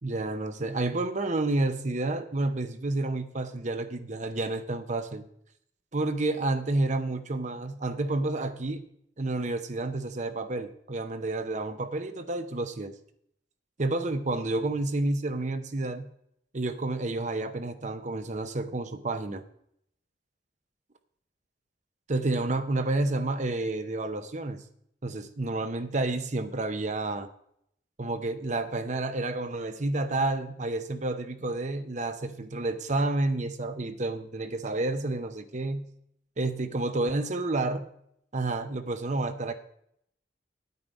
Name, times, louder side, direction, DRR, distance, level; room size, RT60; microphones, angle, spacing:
voice 1, 0.0-5.2 5.9-8.8 9.2-13.0 13.8-16.1 16.5-19.4 22.1-24.6 25.0-27.3 28.0-35.9 36.4-37.9 38.3-39.5, right 2 dB, 40° right, 9 dB, 0.8 m, -30 dB
9.4 x 8.6 x 5.3 m, 0.71 s
head